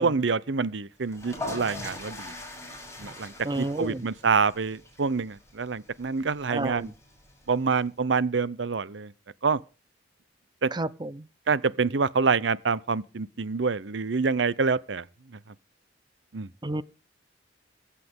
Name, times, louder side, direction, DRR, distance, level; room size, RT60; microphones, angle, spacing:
voice 1, 0.0-2.3 3.0-6.9 7.5-9.1 9.4-9.6 10.6-10.7 11.5-15.0 16.3-16.5, right 5 dB, 70° right, 0.7 m, -26 dB
sound 1, 1.0-7.8, left 2 dB, 15° left, 6.9 m, -42 dB
voice 2, 3.4-4.1 6.5-6.9 10.7-11.3 16.6-16.8, right 2 dB, 25° right, 0.7 m, -31 dB
23.0 x 8.4 x 3.7 m
head